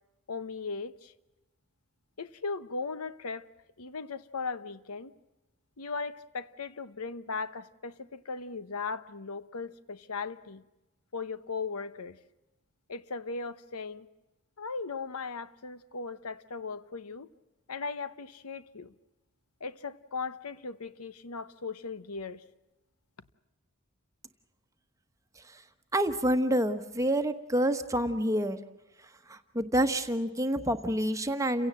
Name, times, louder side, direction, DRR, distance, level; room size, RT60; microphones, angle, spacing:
voice 1, 0.3-1.1 2.2-3.5 3.8-5.1 5.8-10.6 11.1-12.2 12.9-14.1 14.6-17.3 17.7-18.9 19.6-22.4, left 4 dB, 85° left, 1.0 m, -38 dB
voice 2, 25.9-28.6 29.3-31.7, right 1 dB, 15° right, 1.1 m, -28 dB
29.5 x 17.0 x 7.6 m
head